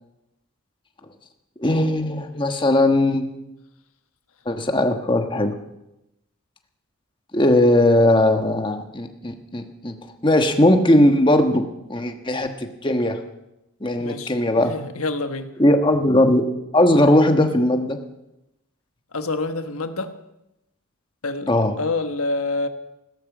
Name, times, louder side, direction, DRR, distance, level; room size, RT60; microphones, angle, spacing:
voice 1, 1.6-3.3 4.5-5.5 7.3-9.9 10.2-11.6 11.9-12.5 12.8-13.2 13.8-14.7 15.6-16.4 16.7-18.0 21.5-21.7, left 1 dB, 20° left, 5 dB, 1.3 m, -18 dB
voice 2, 14.0-15.5 19.1-20.1 21.2-21.5 21.8-22.7, left 3 dB, 85° left, 8 dB, 1.3 m, -27 dB
16.5 x 13.0 x 6.1 m, 0.89 s
head